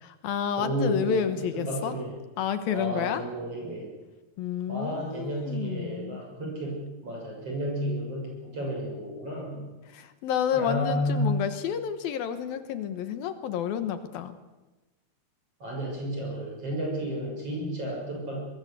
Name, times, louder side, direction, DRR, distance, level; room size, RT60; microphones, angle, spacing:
voice 1, 0.0-2.0 2.4-3.2 4.4-6.2 9.9-14.4, left 8 dB, 70° left, 10 dB, 2.9 m, -30 dB
voice 2, 0.6-2.1 2.7-3.9 4.7-9.6 10.5-11.3 15.6-18.4, equal, 35° right, -1 dB, 7.9 m, -32 dB
24.5 x 21.0 x 8.1 m, 1.1 s
omnidirectional pair, 4.6 m